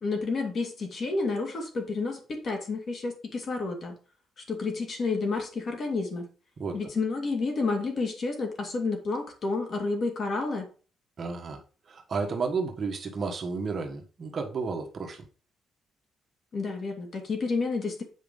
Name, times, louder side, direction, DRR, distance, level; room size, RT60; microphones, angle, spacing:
voice 1, 0.0-4.0 4.5-6.3 6.7-10.7 16.5-18.0, left 3 dB, 45° left, 3 dB, 2.4 m, -30 dB
voice 2, 11.2-11.6 11.9-15.3, right 4 dB, 35° right, 2 dB, 1.5 m, -32 dB
8.2 x 5.1 x 5.2 m, 0.36 s
cardioid pair, 150°, 0 cm